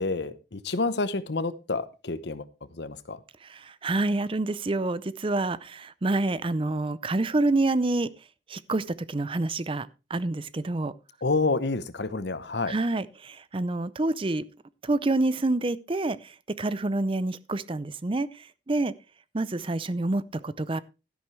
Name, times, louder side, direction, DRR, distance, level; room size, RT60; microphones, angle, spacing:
voice 1, 0.0-2.5 2.8-3.2 11.2-12.8, left 3 dB, 60° left, 0.9 m, -28 dB
voice 2, 3.4-8.1 8.5-10.9 12.7-14.4 14.8-16.3 16.6-18.9 19.3-20.8, right 2 dB, 30° right, 0.5 m, -27 dB
13.0 x 10.5 x 3.3 m
head